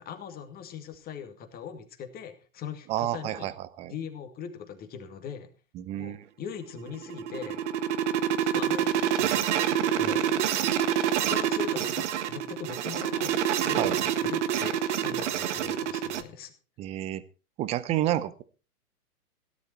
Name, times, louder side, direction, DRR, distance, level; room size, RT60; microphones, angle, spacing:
voice 1, 0.0-3.5 3.9-5.5 6.0-7.7 8.4-10.2 11.2-13.4 13.6-16.5, left 7 dB, 20° left, 6 dB, 2.3 m, -40 dB
voice 2, 2.9-3.9 5.7-6.3 13.8-14.0 16.8-17.2 17.6-18.4, right 13 dB, 15° right, 16 dB, 0.7 m, -30 dB
sound 1, 6.8-16.2, right 10 dB, 50° right, 1.5 m, -27 dB
17.0 x 11.0 x 4.4 m, 0.34 s
hypercardioid pair, 130°, 47 cm